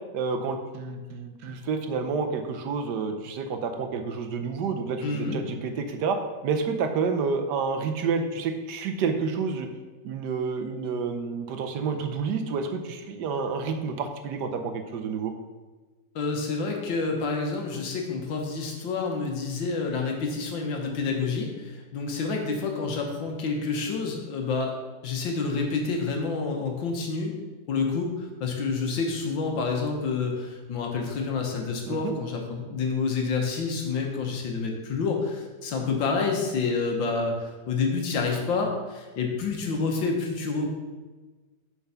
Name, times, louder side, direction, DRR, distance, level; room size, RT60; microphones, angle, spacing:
voice 1, 0.1-6.2 6.4-9.7 10.0-15.3 31.9-32.2, right 5 dB, 70° right, 6 dB, 1.3 m, -29 dB
voice 2, 5.0-5.4 16.2-24.8 25.0-27.3 27.7-40.7, left 4 dB, 80° left, 1 dB, 1.9 m, -28 dB
7.0 x 4.7 x 5.6 m, 1.3 s
omnidirectional pair, 2.0 m